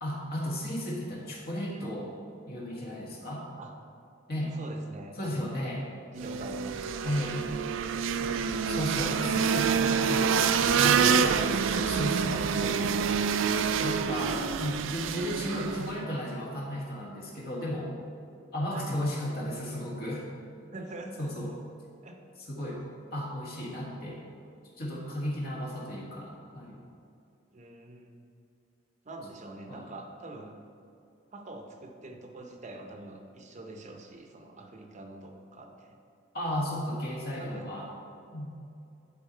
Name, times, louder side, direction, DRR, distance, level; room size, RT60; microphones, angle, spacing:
voice 1, 0.0-2.2 2.5-3.4 4.3-4.6 5.2-5.8 7.0-7.4 8.2-13.0 13.8-17.9 18.5-20.3 21.2-21.5 22.4-22.8 23.1-24.2 24.8-26.8 29.7-29.9 36.3-37.9 38.3-38.5, equal, 55° left, -3 dB, 1.6 m, -34 dB
voice 2, 4.5-5.5 6.1-7.2 14.2-14.4 18.7-18.9 20.7-21.5 22.0-22.2 27.5-28.2 29.0-30.6 31.3-36.0 37.4-37.7, right 2 dB, 40° right, 3 dB, 0.7 m, -45 dB
sound 1, 6.2-16.0, right 6 dB, 90° right, 0.4 m, -27 dB
11.0 x 4.0 x 4.4 m, 2.5 s
head